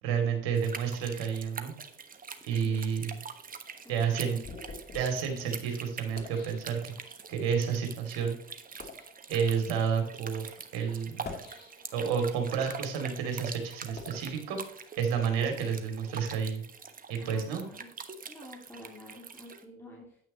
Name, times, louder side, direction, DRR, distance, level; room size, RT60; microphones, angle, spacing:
voice 1, 0.0-1.7 2.5-3.2 3.9-4.4 4.9-6.9 7.3-8.4 9.3-11.2 11.9-14.6 15.0-16.6 17.1-17.7, right 7 dB, 65° right, 4 dB, 2.6 m, -30 dB
sound 1, 0.5-19.6, right 6 dB, 30° right, 1.2 m, -45 dB
voice 2, 2.6-2.9 3.8-4.4 17.2-17.9 18.3-20.2, left 1 dB, 10° left, -3 dB, 2.8 m, -49 dB
sound 2, 3.6-7.3 8.0-8.1 8.6-9.2 10.0-10.1 11.0-12.1 12.7-15.2, left 3 dB, 35° left, 3.1 m, -48 dB
9.3 x 9.0 x 3.0 m, 0.63 s
figure-of-eight pair, 55°, 29 cm